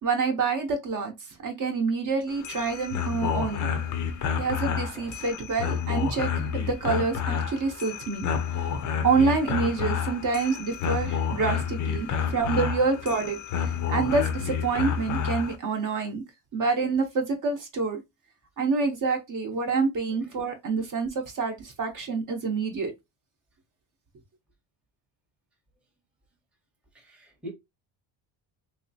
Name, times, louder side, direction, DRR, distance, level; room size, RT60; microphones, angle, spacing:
voice 1, 0.0-1.1 1.4-3.7 4.4-8.2 8.5-16.2 16.5-18.0 18.6-22.9, right 4 dB, 40° right, 0.8 m, -27 dB
sound 1, 2.3-15.6, left 7 dB, 40° left, 0.5 m, -29 dB
voice 2, 26.9-27.5, equal, ahead, 0.7 m, -45 dB
3.1 x 2.7 x 2.7 m
cardioid pair, 150°, 48 cm